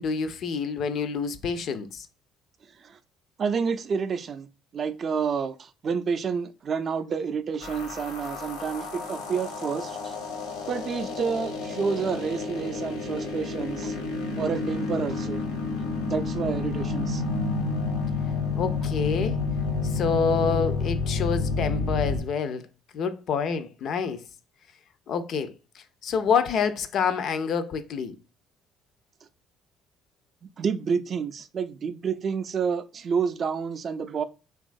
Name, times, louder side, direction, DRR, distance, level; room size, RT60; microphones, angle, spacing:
voice 1, 0.0-2.1 18.5-19.4 19.9-22.7 22.9-24.2 25.1-25.5 26.0-28.2, left 6 dB, 60° left, 0.3 m, -27 dB
voice 2, 3.4-4.5 4.7-10.1 10.7-14.0 14.4-15.4 16.1-17.2 30.4-34.2, right 6 dB, 45° right, 0.3 m, -29 dB
sound 1, 7.6-22.2, left 4 dB, 80° left, 0.7 m, -30 dB
3.0 x 2.3 x 2.5 m
hypercardioid pair, 55°, 0 cm